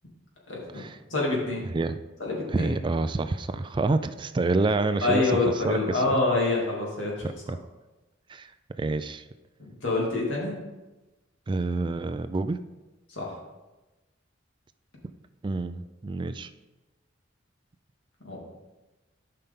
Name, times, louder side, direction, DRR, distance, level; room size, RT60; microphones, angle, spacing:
voice 1, 0.5-0.8 1.1-1.6 2.2-2.7 5.0-7.3 9.8-10.5 13.2-13.3 18.2-18.4, left 3 dB, 85° left, -3 dB, 2.7 m, -26 dB
voice 2, 2.5-5.3 5.6-6.2 7.2-7.6 8.3-8.5 8.8-9.2 11.5-12.6 15.4-16.5, right 3 dB, 25° right, 11 dB, 0.3 m, -28 dB
12.5 x 5.6 x 3.7 m, 1.1 s
head